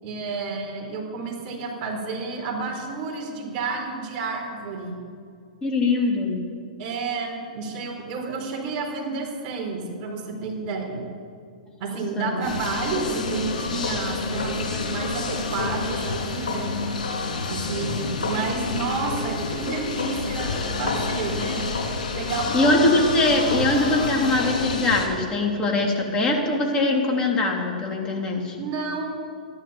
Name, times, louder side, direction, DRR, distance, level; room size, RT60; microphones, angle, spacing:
voice 1, 0.0-5.0 6.8-11.1 11.8-16.8 17.5-21.7 22.1-22.9 28.6-29.2, right 4 dB, 40° right, 0 dB, 4.4 m, -30 dB
voice 2, 5.6-6.4 12.1-12.4 22.5-28.6, left 2 dB, 20° left, 0 dB, 3.1 m, -22 dB
sound 1, 12.4-25.1, left 4 dB, 75° left, 3.4 m, -28 dB
13.5 x 11.5 x 7.1 m, 2.3 s
hypercardioid pair, 115°, 4 cm